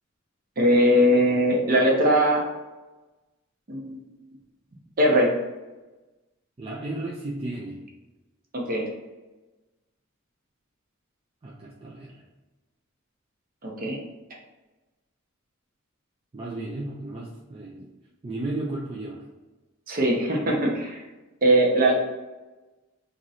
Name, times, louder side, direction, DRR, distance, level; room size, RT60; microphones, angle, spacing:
voice 1, 0.6-2.4 3.7-4.0 5.0-5.3 8.5-8.8 13.6-14.0 19.9-21.0 21.4-21.9, equal, 45° right, 0 dB, 0.8 m, -20 dB
voice 2, 6.6-7.8 11.4-12.2 16.3-17.8 18.2-19.2, right 2 dB, 25° right, -5 dB, 0.4 m, -34 dB
3.0 x 2.6 x 4.0 m, 1.2 s
head